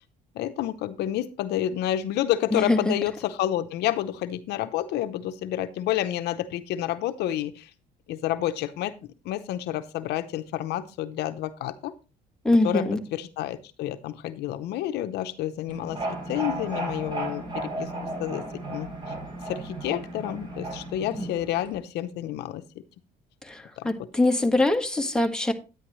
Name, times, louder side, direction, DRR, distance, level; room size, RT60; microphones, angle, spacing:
voice 1, 0.3-7.7 8.1-8.9 9.2-11.9 12.6-12.8 13.1-17.9 18.2-18.4 18.7-18.9 19.5-22.6 23.8-24.1, left 12 dB, 80° left, 0.8 m, -29 dB
voice 2, 2.5-2.9 12.4-13.0 23.5-25.5, left 2 dB, 5° left, 1.5 m, -23 dB
sound 1, 15.7-21.8, right 2 dB, 30° right, 4.5 m, -34 dB
10.0 x 9.9 x 3.1 m
cardioid pair, 110°, 17 cm